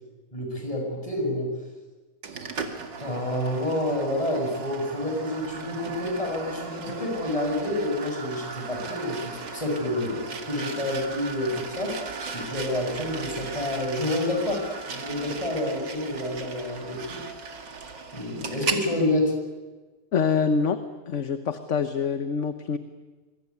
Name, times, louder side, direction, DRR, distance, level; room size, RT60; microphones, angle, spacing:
voice 1, 0.3-1.5 3.0-12.0 12.3-17.2 18.1-19.3, left 1 dB, 20° left, 2 dB, 7.0 m, -28 dB
sound 1, 2.2-18.9, right 5 dB, 85° right, 2.9 m, -36 dB
voice 2, 20.1-20.8 21.1-22.8, left 6 dB, 45° left, 9 dB, 1.3 m, -25 dB
26.0 x 23.0 x 9.6 m, 1.3 s
omnidirectional pair, 1.9 m